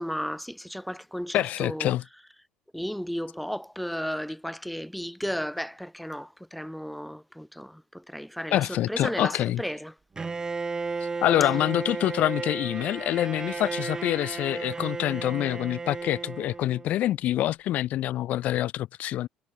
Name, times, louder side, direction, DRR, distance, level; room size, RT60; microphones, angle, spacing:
voice 1, 0.0-1.9 2.7-9.9, equal, ahead, 2.1 m, -34 dB
voice 2, 1.3-2.0 8.5-9.6 11.2-19.3, left 13 dB, 60° left, 2.7 m, -26 dB
Bowed string instrument, 10.2-17.1, right 4 dB, 25° right, 2.4 m, -34 dB
supercardioid pair, 95°, 3 cm